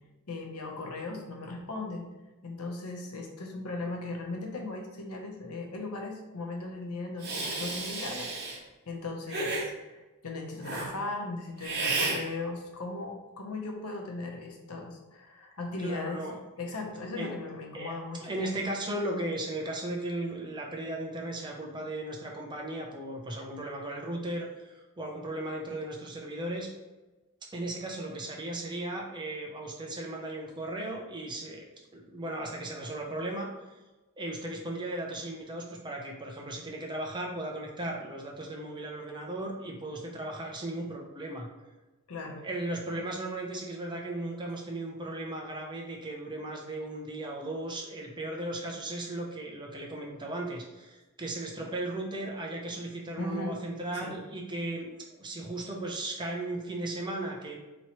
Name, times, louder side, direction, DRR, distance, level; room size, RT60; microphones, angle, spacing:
voice 1, 0.3-2.1 2.4-8.3 8.9-16.2 16.6-18.3 42.1-42.4 52.7-52.8 53.2-53.5 53.9-54.2, left 3 dB, 90° left, 1 dB, 0.8 m, -37 dB
Hiss, 7.2-8.6 9.3-9.7 10.6-10.9 11.6-12.2, right 3 dB, 50° right, 1.1 m, -32 dB
voice 2, 15.8-16.4 17.1-17.4 17.7-26.7 27.5-31.6 31.9-33.5 34.2-41.5 42.4-57.6, right 1 dB, 20° right, -1 dB, 0.6 m, -36 dB
4.3 x 3.1 x 3.0 m, 1.1 s
head